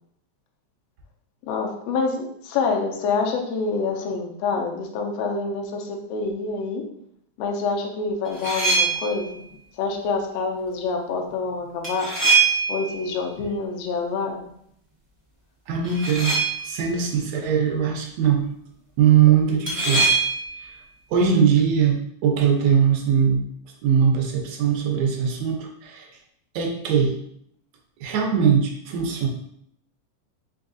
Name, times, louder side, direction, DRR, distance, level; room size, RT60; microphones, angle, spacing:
voice 1, 1.5-6.8 7.4-9.4 9.8-12.1 12.7-14.4, left 4 dB, 75° left, 2 dB, 1.7 m, -26 dB
sound 1, 8.2-9.3 11.8-13.0 15.8-16.8 19.7-20.6, right 4 dB, 50° right, 0.4 m, -22 dB
voice 2, 15.7-16.3 16.6-18.5 19.0-20.2 20.6-20.7 21.1-23.4 23.8-26.1 26.5-27.1 28.0-29.3, right 7 dB, 75° right, 1 dB, 1.7 m, -21 dB
4.7 x 3.4 x 2.5 m, 0.71 s
omnidirectional pair, 3.4 m